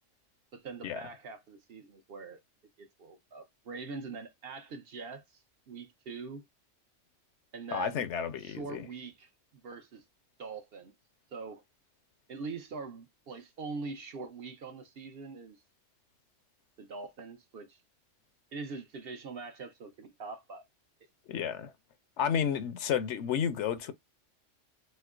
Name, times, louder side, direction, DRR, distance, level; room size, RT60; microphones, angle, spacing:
voice 1, 0.5-2.4 2.8-6.4 7.5-8.0 8.4-10.0 10.4-10.9 11.3-11.6 12.3-15.6 16.8-17.8 18.5-20.6, right 4 dB, 55° right, 0.8 m, -43 dB
voice 2, 7.7-8.8 21.3-21.7 22.2-23.9, left 8 dB, 70° left, 0.9 m, -31 dB
4.3 x 2.0 x 2.3 m
omnidirectional pair, 1.3 m